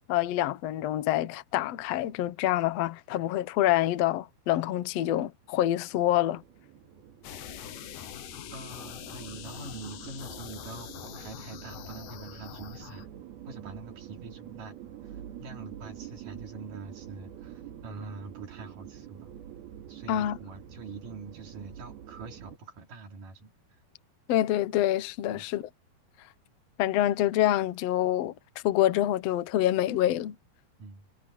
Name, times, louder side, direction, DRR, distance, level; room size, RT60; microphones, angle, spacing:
voice 1, 0.1-6.4 20.1-20.4 24.3-25.6 26.8-28.3 28.6-30.4, left 13 dB, 90° left, 1.4 m, -26 dB
sound 1, 5.4-22.6, right 10 dB, 75° right, 4.1 m, -47 dB
sound 2, 7.2-13.1, left 11 dB, 65° left, 2.4 m, -44 dB
voice 2, 8.5-13.1 13.4-14.8 15.0-19.3 19.9-23.5 25.3-25.5 30.8-31.1, right 3 dB, 55° right, 5.1 m, -44 dB
omnidirectional pair, 4.5 m